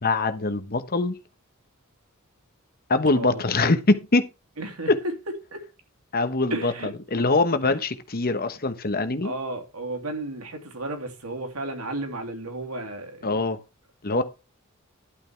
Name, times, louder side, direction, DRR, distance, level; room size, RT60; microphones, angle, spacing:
voice 1, 0.0-1.2 2.9-4.3 4.9-5.0 6.1-6.7 7.1-9.3 13.2-13.6 14.0-14.2, left 3 dB, 45° left, 1.1 m, -23 dB
voice 2, 4.6-4.9 5.5-5.6 6.5-6.9 7.6-7.8 9.2-13.4 14.1-14.2, right 2 dB, 90° right, 2.9 m, -33 dB
11.5 x 8.9 x 3.4 m
head